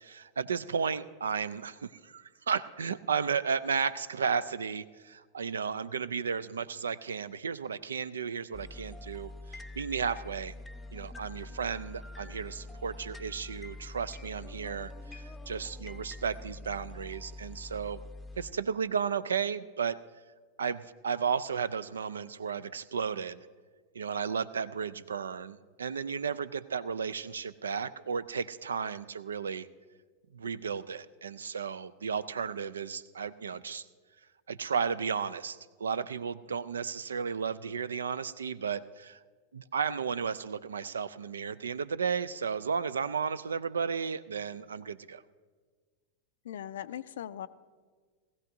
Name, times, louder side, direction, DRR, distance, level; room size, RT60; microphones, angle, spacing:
voice 1, 0.0-10.5 10.9-18.0 18.4-20.0 20.6-23.5 23.9-29.7 30.3-33.8 34.5-39.2 39.5-45.2, right 6 dB, 70° right, 17 dB, 0.4 m, -34 dB
sound 1, 8.5-18.5, left 2 dB, 10° left, 0.6 m, -45 dB
voice 2, 46.4-47.5, left 10 dB, 60° left, 16 dB, 0.4 m, -39 dB
19.5 x 15.0 x 2.7 m, 1.5 s
figure-of-eight pair, 90°, 0 cm